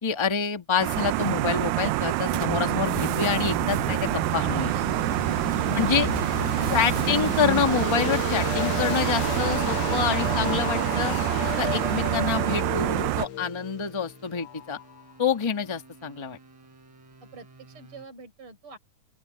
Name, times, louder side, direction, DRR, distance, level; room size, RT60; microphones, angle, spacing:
voice 1, 0.0-4.7 5.7-6.1 6.7-11.2 11.6-14.8 15.2-16.4, left 6 dB, 20° left, 0.8 m, -27 dB
sound 1, 0.8-13.3, right 17 dB, 80° right, 1.9 m, -26 dB
sound 2, 2.3-15.1, left 17 dB, 85° left, 2.1 m, -34 dB
sound 3, 3.7-18.1, right 3 dB, 55° right, 6.9 m, -50 dB
voice 2, 5.5-7.5 17.3-18.8, right 3 dB, 40° right, 6.2 m, -46 dB
open air
omnidirectional pair, 3.6 m